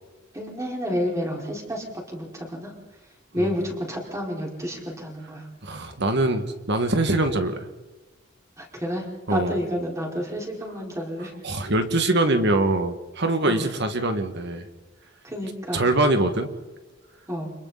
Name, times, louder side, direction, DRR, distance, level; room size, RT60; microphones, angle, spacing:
voice 1, 0.3-2.7 3.3-5.4 8.6-11.3 13.4-13.7 15.2-15.8 17.3-17.5, equal, 15° right, -1 dB, 4.7 m, -30 dB
voice 2, 5.6-7.7 9.3-9.6 11.4-14.7 15.7-16.5, right 2 dB, 55° right, 7 dB, 2.0 m, -23 dB
29.5 x 26.0 x 4.2 m, 1.1 s
head